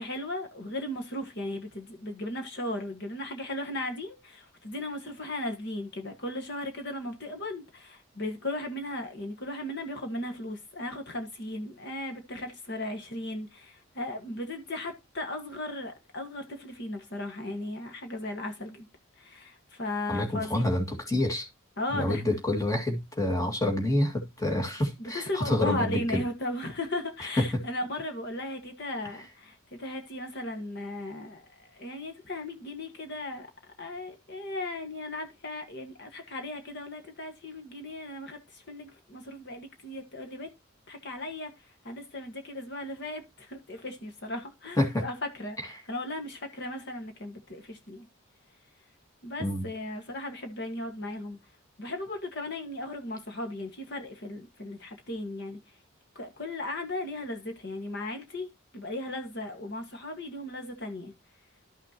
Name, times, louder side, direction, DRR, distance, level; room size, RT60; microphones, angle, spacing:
voice 1, 0.0-18.9 19.2-20.7 21.8-22.4 25.0-31.4 31.7-33.5 33.8-40.5 40.9-41.5 41.9-45.6 45.9-48.1 49.2-51.4 51.8-55.6 56.2-58.5 58.7-61.1, left 1 dB, 50° left, 1.6 m, -36 dB
voice 2, 20.1-21.5 21.9-26.2 27.4-27.6 29.0-29.2 44.8-45.0 45.6-45.7 49.4-49.7, left 1 dB, 15° left, 1.9 m, -28 dB
12.5 x 6.1 x 2.9 m
head